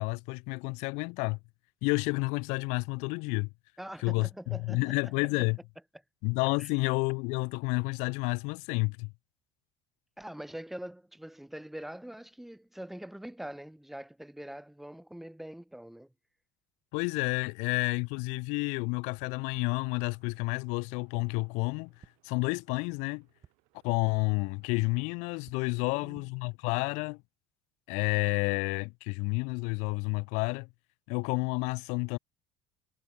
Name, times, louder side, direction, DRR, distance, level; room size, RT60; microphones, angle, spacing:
voice 1, 0.0-1.4 1.8-3.5 4.0-5.6 6.2-9.1 16.9-23.3 23.8-27.2 27.9-30.7 31.1-32.2, left 31 dB, 80° left, 0.5 m, -30 dB
voice 2, 3.8-5.1 6.6-6.7 10.2-16.1 25.8-26.3, right 1 dB, ahead, 1.2 m, -44 dB
sound 1, 20.0-26.2, right 30 dB, 85° right, 7.3 m, -73 dB
sound 2, 21.3-21.4 22.0-22.1 22.7-22.8 23.4-23.5 24.0-24.1 24.8-24.9 25.4-25.5 26.0-26.2, right 7 dB, 30° right, 3.0 m, -54 dB
cardioid pair, 150°, 12 cm